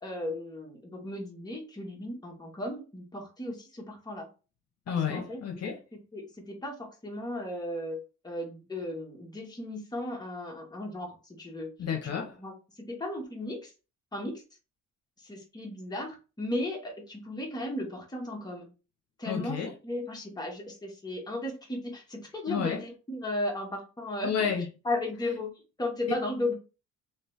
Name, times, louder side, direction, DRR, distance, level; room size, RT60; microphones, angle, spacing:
voice 1, 0.0-4.3 4.9-5.4 5.9-11.7 12.0-12.1 12.4-13.7 14.1-14.4 15.2-18.7 19.2-24.3 24.8-26.5, left 1 dB, 15° left, 1.3 m, -35 dB
voice 2, 4.9-5.8 11.8-12.4 19.2-19.7 22.5-22.8 24.2-24.7, left 7 dB, 55° left, 0.9 m, -31 dB
3.2 x 3.0 x 3.2 m
cardioid pair, 90°, 30 cm